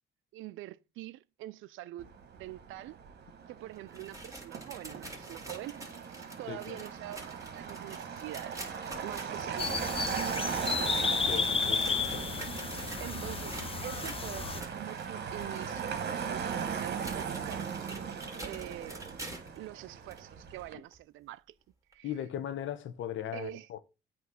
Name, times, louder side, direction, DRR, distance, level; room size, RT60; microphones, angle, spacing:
voice 1, 0.3-3.0 3.5-5.8 6.4-8.7 9.0-10.7 13.0-17.7 18.4-19.1 19.5-21.4 21.9-22.1 23.3-23.7, right 15 dB, 85° right, 0.4 m, -45 dB
Motor vehicle (road), 2.0-20.7, right 7 dB, 60° right, 1.2 m, -39 dB
sound 1, 3.7-19.6 20.1-20.2 20.9-21.0 21.9-22.0, right 2 dB, 15° right, 2.2 m, -47 dB
voice 2, 6.5-6.8 11.3-12.2 22.0-23.8, left 10 dB, 75° left, 0.9 m, -38 dB
sound 2, 9.6-14.6, left 5 dB, 30° left, 0.6 m, -32 dB
8.4 x 3.1 x 5.6 m
cardioid pair, 90°, 20 cm